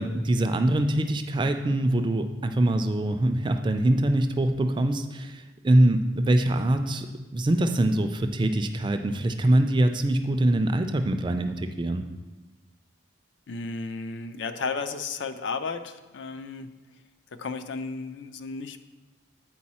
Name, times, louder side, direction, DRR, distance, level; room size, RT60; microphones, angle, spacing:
voice 1, 0.0-7.1 7.3-12.0, right 1 dB, 25° right, 8 dB, 0.3 m, -24 dB
voice 2, 13.5-16.7 17.3-18.8, left 4 dB, 65° left, 9 dB, 0.4 m, -33 dB
8.6 x 4.6 x 4.2 m, 1.2 s
head